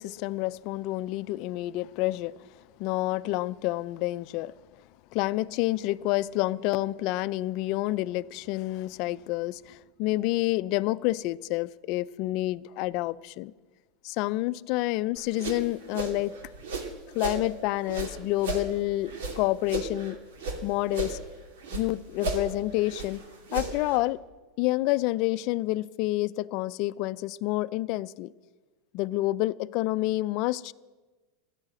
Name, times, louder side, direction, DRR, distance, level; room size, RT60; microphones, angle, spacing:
voice 1, 0.0-2.3 2.8-4.5 5.1-13.5 14.0-16.3 17.1-20.2 20.6-21.2 21.7-23.2 23.5-24.2 24.6-28.3 28.9-30.7, left 18 dB, 50° left, 0.4 m, -28 dB
sound 1, 15.2-17.4 17.8-20.6 20.9-21.9 22.2-24.0, right 2 dB, 85° right, 2.7 m, -34 dB
15.0 x 10.5 x 7.7 m
supercardioid pair, 145°, 0 cm